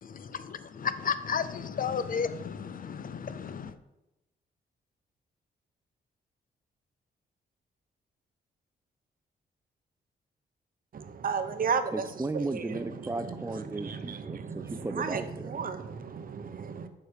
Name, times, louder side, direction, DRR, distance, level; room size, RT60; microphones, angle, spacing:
voice 1, 0.0-3.7, left 6 dB, 50° left, 0.6 m, -33 dB
voice 2, 10.9-11.9 12.3-12.6 13.8-16.9, right 6 dB, 50° right, 0.8 m, -33 dB
voice 3, 11.9-15.6, right 2 dB, 15° right, 0.6 m, -35 dB
6.9 x 5.1 x 6.7 m
cardioid pair, 85°, 19 cm